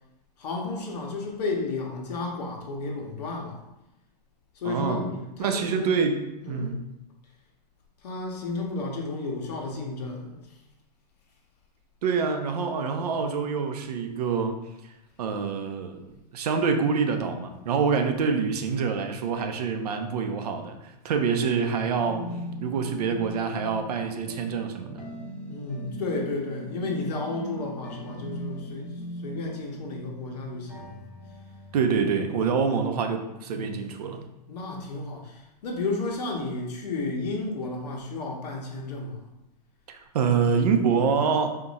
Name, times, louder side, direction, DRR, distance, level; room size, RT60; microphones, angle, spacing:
voice 1, 0.4-3.6 4.5-5.9 6.4-6.8 8.0-10.6 25.5-28.9 29.2-31.1 33.5-33.8 34.5-39.3, left 3 dB, 70° left, 0 dB, 1.1 m, -32 dB
voice 2, 4.6-5.0 5.4-6.2 6.5-6.8 12.0-14.6 15.2-22.2 22.6-25.1 31.7-34.2 39.9-41.5, right 5 dB, 65° right, 6 dB, 0.6 m, -26 dB
sound 1, 21.9-31.8, right 1 dB, 5° left, 0.4 m, -40 dB
3.6 x 2.9 x 4.1 m, 0.92 s
supercardioid pair, 175°, 21 cm